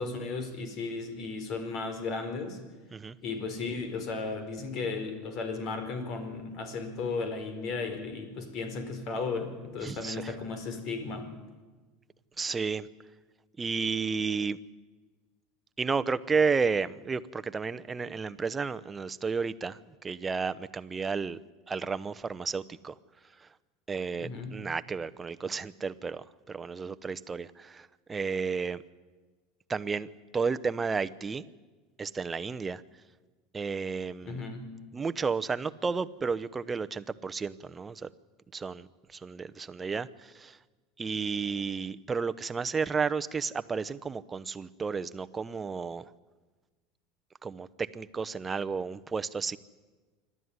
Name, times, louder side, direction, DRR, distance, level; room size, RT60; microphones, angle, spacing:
voice 1, 0.0-2.6 3.2-11.3 24.2-24.6 34.2-34.7, left 4 dB, 55° left, 8 dB, 4.4 m, -35 dB
voice 2, 9.8-10.3 12.4-12.9 13.6-14.6 15.8-21.4 21.7-22.9 23.4-23.5 23.9-28.8 29.7-31.4 32.0-32.8 33.5-34.4 34.9-38.1 38.5-40.6 41.0-46.1 47.4-49.6, right 5 dB, 20° right, 13 dB, 0.9 m, -32 dB
26.5 x 12.5 x 9.7 m, 1.3 s
supercardioid pair, 100°, 0 cm